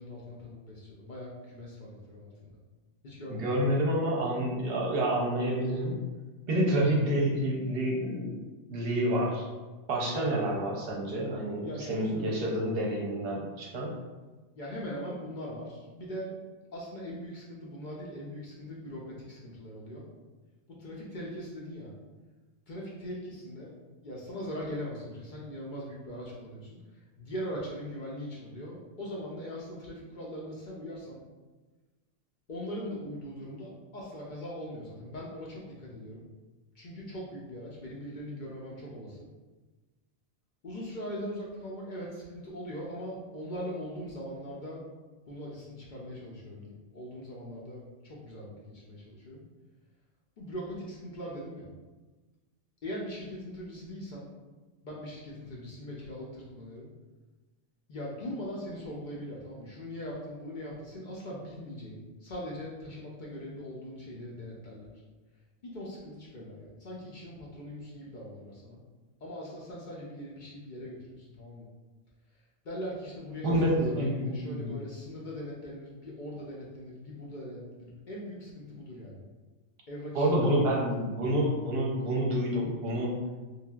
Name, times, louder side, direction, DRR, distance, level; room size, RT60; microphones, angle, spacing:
voice 1, 0.0-2.6 3.0-3.6 11.6-12.4 14.5-16.4 16.7-20.1 20.7-21.9 22.7-31.2 32.5-36.3 36.7-39.3 40.6-44.8 45.3-49.4 50.4-51.7 52.8-54.3 54.8-56.9 57.9-64.9 65.6-68.8 69.2-71.7 72.6-79.2 79.9-80.5, equal, 55° left, -4 dB, 0.5 m, -41 dB
voice 2, 3.3-6.0 6.5-8.4 8.7-9.4 9.9-13.9 73.4-74.7 80.1-83.2, right 1 dB, 55° right, -2 dB, 0.8 m, -28 dB
3.2 x 2.6 x 2.3 m, 1.2 s
omnidirectional pair, 1.3 m